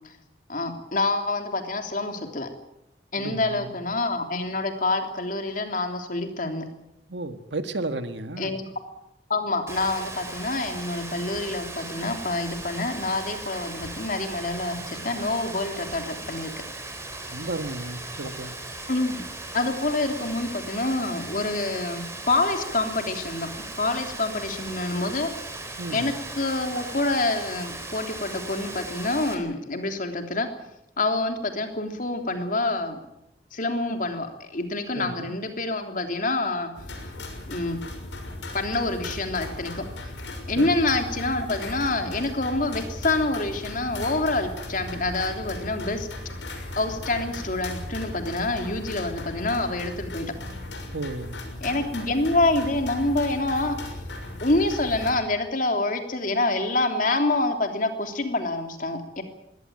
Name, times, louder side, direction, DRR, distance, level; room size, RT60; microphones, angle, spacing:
voice 1, 0.5-2.5 3.1-6.6 8.4-8.7 9.3-16.5 18.9-19.2 19.5-23.5 23.8-25.3 25.9-30.5 31.0-33.0 33.5-36.7 37.5-37.8 38.5-39.8 40.5-46.1 46.7-50.3 51.6-53.8 54.4-59.2, left 2 dB, 50° left, 5 dB, 3.3 m, -27 dB
voice 2, 3.2-3.7 7.1-8.6 17.3-18.5 25.8-26.1 34.9-35.3 40.5-40.7 50.9-51.4, right 2 dB, 80° right, 9 dB, 1.8 m, -33 dB
Rain, 9.7-29.3, right 2 dB, 15° right, 4.0 m, -38 dB
sound 1, 36.7-55.1, left 1 dB, 85° left, 6.4 m, -37 dB
22.0 x 17.5 x 9.0 m, 0.84 s
head